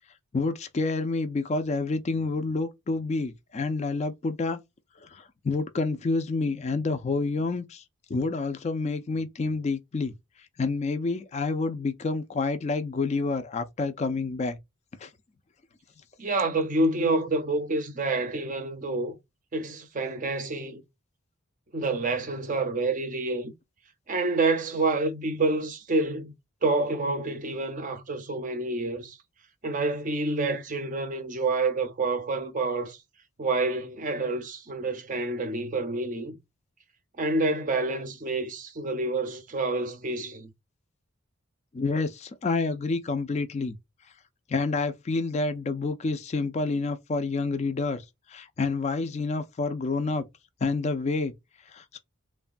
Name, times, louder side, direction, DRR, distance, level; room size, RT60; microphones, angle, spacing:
voice 1, 0.3-4.6 5.0-7.8 8.1-10.1 10.6-14.6 15.0-15.1 41.7-43.8 44.5-50.2 50.6-51.3 51.7-52.0, left 3 dB, 30° left, 0.3 m, -28 dB
voice 2, 16.2-19.2 19.5-20.8 21.7-23.5 24.1-26.3 26.6-29.2 29.6-33.0 33.4-36.4 37.2-40.5, right 2 dB, 35° right, 0.5 m, -28 dB
3.2 x 2.2 x 2.5 m
head